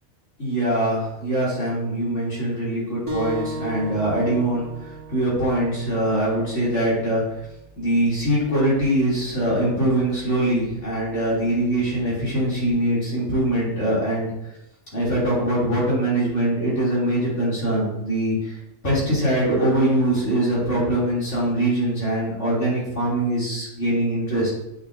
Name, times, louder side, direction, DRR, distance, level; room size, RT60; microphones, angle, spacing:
voice 1, 0.4-7.4 7.7-14.3 14.9-18.6 18.8-24.5, right 1 dB, 75° left, -7 dB, 3.4 m, -23 dB
sound 1, 3.1-8.2, left 1 dB, 25° right, 2.2 m, -36 dB
8.0 x 6.4 x 2.7 m, 0.86 s
omnidirectional pair, 1.2 m